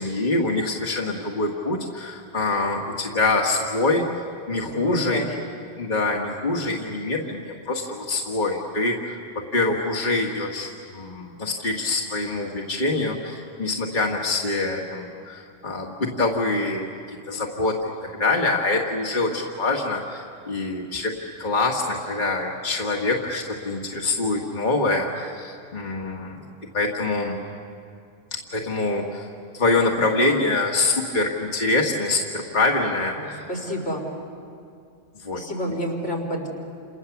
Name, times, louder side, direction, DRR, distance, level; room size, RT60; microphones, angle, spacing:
voice 1, 0.0-4.1 4.5-5.3 5.8-9.2 9.5-21.1 21.4-26.4 26.7-27.4 28.5-29.3 29.5-33.4 35.2-35.4, left 2 dB, 40° left, -1 dB, 1.9 m, -25 dB
voice 2, 4.5-5.3 33.1-34.0 35.3-36.5, equal, 75° left, -1 dB, 4.7 m, -29 dB
29.5 x 28.5 x 7.1 m, 2.4 s
omnidirectional pair, 1.2 m